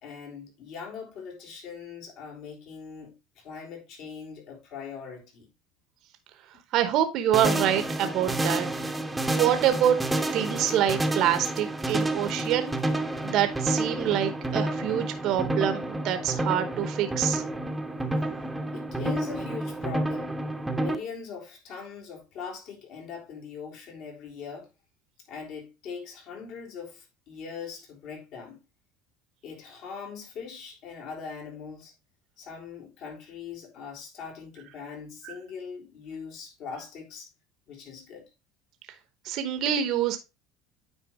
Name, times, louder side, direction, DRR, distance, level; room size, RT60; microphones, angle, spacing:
voice 1, 0.0-5.5 18.7-20.3 20.7-24.7 25.3-28.6 29.4-31.9 32.4-37.3 37.7-38.3, left 6 dB, 60° left, 3.6 m, -41 dB
voice 2, 6.7-8.7 9.4-10.0 10.3-12.7 13.2-17.4 35.2-35.3 39.2-40.2, right 10 dB, 55° right, 1.0 m, -26 dB
sound 1, 7.3-21.0, right 1 dB, 5° right, 0.9 m, -29 dB
9.2 x 4.4 x 3.5 m
supercardioid pair, 125°, 0 cm